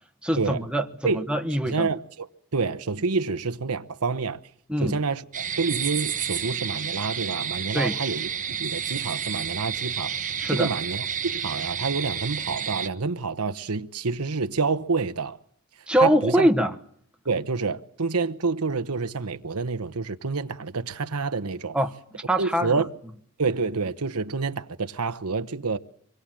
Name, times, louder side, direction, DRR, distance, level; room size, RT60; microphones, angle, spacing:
voice 1, 0.2-1.9 4.7-5.0 7.7-7.9 10.4-10.7 15.9-16.7 21.7-22.8, equal, 5° right, 1.2 m, -24 dB
voice 2, 1.6-4.4 4.8-10.2 10.5-15.4 16.0-16.5 17.2-21.8 22.4-22.9 23.4-25.8, right 4 dB, 75° right, 1.0 m, -28 dB
sound 1, 5.3-12.9, right 8 dB, 35° right, 1.0 m, -30 dB
25.5 x 21.0 x 7.6 m
head